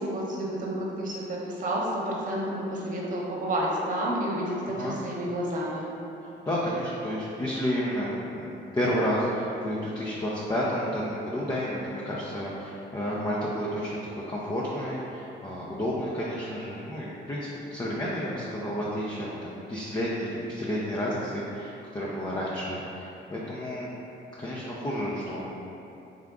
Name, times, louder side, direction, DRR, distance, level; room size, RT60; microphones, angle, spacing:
voice 1, 0.0-5.9, right 1 dB, 40° right, -4 dB, 1.0 m, -30 dB
voice 2, 6.4-23.9 24.4-25.5, equal, 20° left, -6 dB, 0.6 m, -31 dB
3.6 x 3.6 x 3.6 m, 2.9 s
cardioid pair, 90°, 20 cm